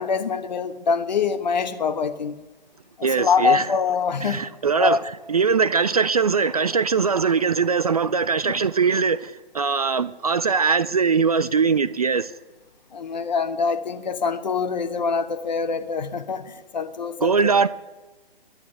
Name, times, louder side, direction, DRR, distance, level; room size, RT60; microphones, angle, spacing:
voice 1, 0.0-2.4 3.0-4.5 4.8-5.0 12.9-17.4, left 5 dB, 45° left, 1.2 m, -24 dB
voice 2, 3.0-3.7 4.2-5.0 5.3-12.3 17.2-17.7, right 5 dB, 40° right, 0.4 m, -21 dB
11.5 x 9.6 x 9.6 m
figure-of-eight pair, 135°, 29 cm